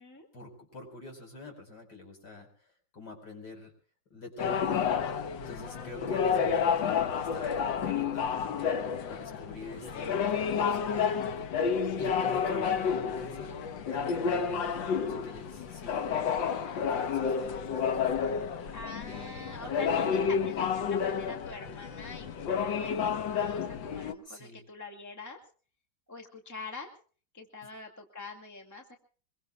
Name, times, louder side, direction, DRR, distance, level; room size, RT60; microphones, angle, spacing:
voice 1, 0.3-3.7 4.1-5.0 5.5-11.0 12.0-13.6 13.9-17.8 18.2-18.8 19.0-20.5 24.2-24.6, left 2 dB, 60° left, 2 dB, 5.4 m, -46 dB
sound 1, 4.4-24.1, left 6 dB, 75° left, 1.8 m, -30 dB
voice 2, 18.7-25.4 26.1-26.9 27.3-29.0, left 3 dB, 10° left, 3 dB, 2.3 m, -45 dB
24.0 x 23.0 x 2.3 m, 0.41 s
omnidirectional pair, 2.1 m